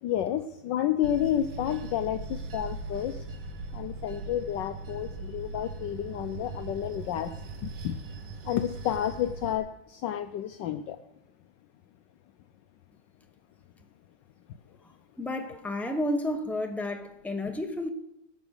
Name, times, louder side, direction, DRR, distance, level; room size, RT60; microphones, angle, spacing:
voice 1, 0.0-3.2 3.7-7.3 7.6-8.0 8.4-11.0, left 11 dB, 70° left, 1.2 m, -30 dB
Bell / Train, 1.0-9.6, right 3 dB, 60° right, 1.7 m, -40 dB
voice 2, 14.8-17.9, left 1 dB, ahead, 0.3 m, -32 dB
17.0 x 7.1 x 6.5 m
omnidirectional pair, 2.2 m